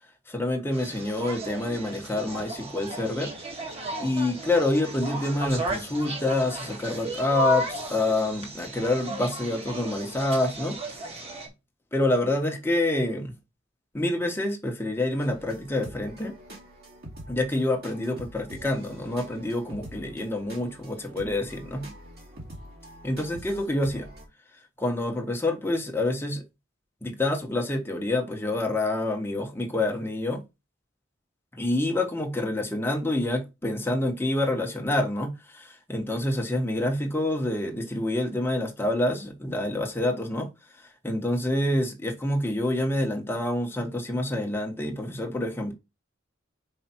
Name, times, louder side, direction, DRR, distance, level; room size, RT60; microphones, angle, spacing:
voice 1, 0.3-3.3 4.0-10.8 11.9-13.3 13.9-16.4 17.3-21.9 23.0-24.1 24.8-26.4 27.0-30.4 31.5-40.5 40.8-45.7, left 1 dB, 10° left, 1.3 m, -27 dB
sound 1, 0.7-11.5, right 1 dB, 30° right, 1.8 m, -35 dB
sound 2, 15.2-24.3, right 1 dB, 55° right, 2.6 m, -45 dB
5.5 x 5.0 x 4.5 m
head